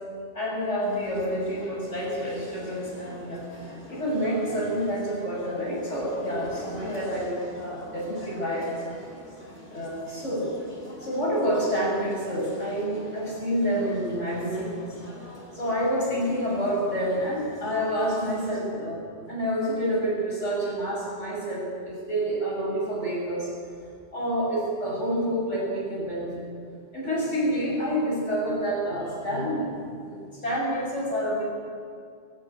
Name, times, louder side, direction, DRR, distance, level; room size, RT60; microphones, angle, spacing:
voice 1, 0.3-8.7 9.7-10.5 11.0-15.0 15.5-23.5 24.1-26.3 26.9-29.7 30.0-31.4, equal, 90° left, -4 dB, 7.1 m, -28 dB
sound 1, 0.8-18.6, equal, 40° left, 4.3 m, -44 dB
20.0 x 15.0 x 8.7 m, 2.2 s
omnidirectional pair, 1.2 m